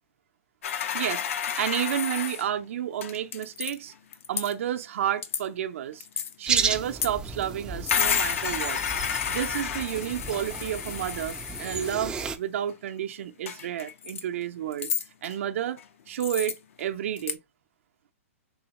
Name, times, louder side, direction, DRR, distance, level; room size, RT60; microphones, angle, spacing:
sound 1, 0.6-2.5 3.0-3.8 4.1-4.5 5.2-5.5 6.0-6.3 7.0-7.1 7.4-7.5 7.8-12.0 12.7-12.8 13.5-14.2 14.7-15.4 15.8-15.9 16.2-16.8 17.2-17.3, left 8 dB, 65° left, 0.6 m, -30 dB
voice 1, 0.9-3.9 4.3-6.1 6.4-8.8 9.3-14.9 15.2-15.8 16.1-17.4, right 10 dB, 60° right, 0.5 m, -31 dB
sound 2, 6.5-12.4, right 5 dB, 10° right, 0.4 m, -33 dB
3.8 x 3.0 x 2.9 m
hypercardioid pair, 145°, 8 cm